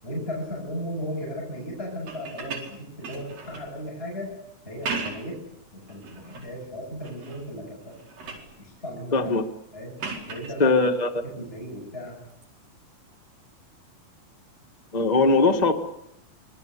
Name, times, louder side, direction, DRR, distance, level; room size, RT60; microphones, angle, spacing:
voice 1, 0.0-4.3 4.6-5.4 5.7-7.9 8.6-9.2 9.7-10.0 10.3-10.8 11.4-12.2, equal, 15° left, -2 dB, 7.6 m, -35 dB
sound 1, 2.0-3.7 4.6-5.4 5.9-6.5 7.0-7.5 7.8-8.5 10.0-10.6 12.3-12.4, right 4 dB, 75° right, 6.1 m, -36 dB
voice 2, 9.1-9.4 10.6-11.1 14.9-15.7, left 3 dB, 60° left, 5 dB, 0.4 m, -20 dB
26.0 x 22.5 x 8.5 m, 0.77 s
omnidirectional pair, 4.1 m